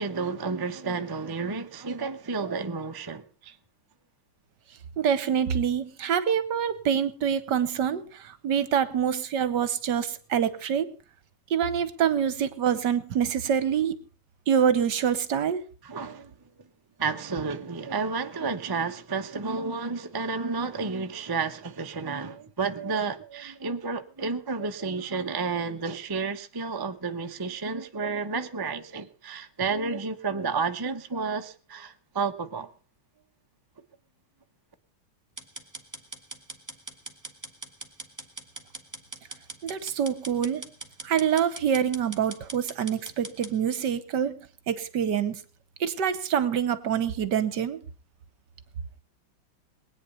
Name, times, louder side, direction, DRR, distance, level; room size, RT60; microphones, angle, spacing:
voice 1, 0.0-3.6 15.8-16.3 16.6-16.7 17.0-32.7, right 4 dB, 30° right, 0.4 m, -31 dB
voice 2, 5.0-10.9 11.5-13.9 14.5-15.6 39.6-40.6 41.0-44.4 44.7-45.4 45.8-47.8, right 8 dB, 60° right, 1.5 m, -26 dB
sound 1, 35.4-43.5, right 2 dB, 10° right, 1.3 m, -42 dB
20.0 x 9.4 x 5.5 m
omnidirectional pair, 2.3 m